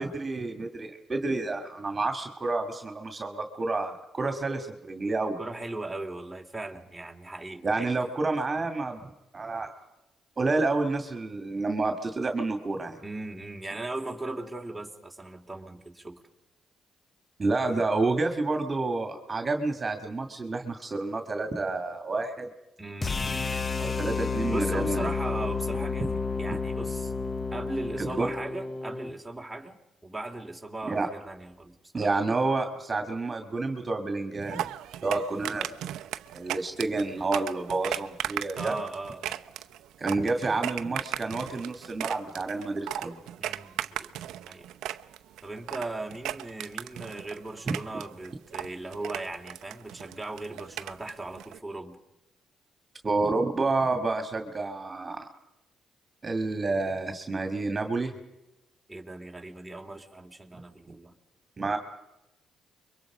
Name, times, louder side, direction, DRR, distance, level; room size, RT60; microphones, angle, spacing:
voice 1, 0.0-5.4 7.6-9.7 10.4-13.0 17.4-22.5 23.8-25.1 28.0-28.3 30.9-31.1 31.9-34.7 35.0-35.7 36.3-38.7 40.0-43.2 47.7-47.8 53.0-55.3 56.2-58.1 61.6-61.8, right 3 dB, 30° right, 7 dB, 2.4 m, -29 dB
voice 2, 5.4-7.9 13.0-16.2 17.7-17.8 22.8-23.3 24.5-27.1 27.5-32.1 38.5-39.4 43.4-44.7 45.4-52.0 58.9-61.1, right 2 dB, 5° right, 1 dB, 3.0 m, -38 dB
sound 1, 23.0-29.2, left 4 dB, 30° left, 0.9 m, -31 dB
sound 2, 34.4-51.6, right 12 dB, 85° right, 0.8 m, -37 dB
29.0 x 23.5 x 5.1 m, 0.95 s
cardioid pair, 90°, 0 cm